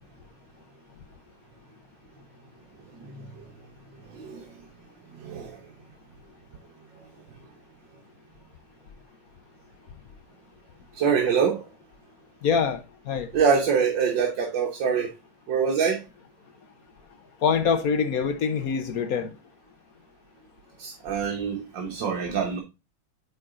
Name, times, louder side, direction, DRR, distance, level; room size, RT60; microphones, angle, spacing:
voice 1, 3.0-3.5 4.1-4.5 5.2-5.6 11.0-11.7 13.3-15.1 15.5-16.0 20.8-22.6, right 6 dB, 65° right, 1.8 m, -25 dB
voice 2, 12.4-13.3 17.4-19.3, left 6 dB, 60° left, 1.0 m, -25 dB
8.8 x 3.9 x 3.6 m
omnidirectional pair, 2.2 m